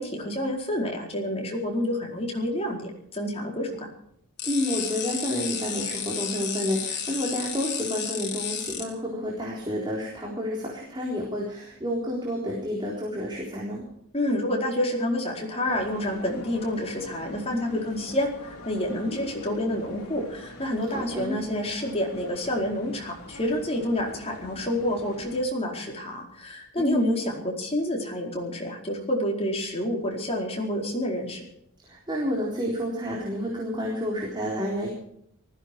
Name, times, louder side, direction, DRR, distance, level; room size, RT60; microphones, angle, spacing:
voice 1, 0.0-3.9 14.1-18.3 18.6-31.4, left 1 dB, 30° left, 0 dB, 4.6 m, -28 dB
sound 1, 4.4-8.8, left 7 dB, 50° left, 3.8 m, -32 dB
voice 2, 4.4-13.9 20.9-21.4 26.8-27.2 31.8-34.9, equal, 20° right, -3 dB, 4.0 m, -30 dB
sound 2, 15.7-25.4, left 1 dB, 75° left, 3.5 m, -43 dB
19.5 x 15.5 x 4.7 m, 0.70 s
head